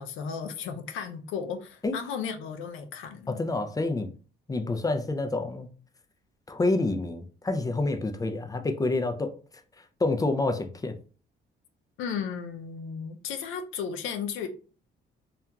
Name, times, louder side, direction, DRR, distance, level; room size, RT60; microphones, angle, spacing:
voice 1, 0.0-3.4 12.0-14.5, left 6 dB, 85° left, 0.4 m, -35 dB
voice 2, 3.3-4.1 4.5-5.7 6.5-9.3 10.0-10.9, left 2 dB, 20° left, 0.4 m, -28 dB
2.8 x 2.4 x 2.2 m
cardioid pair, 90°, 20 cm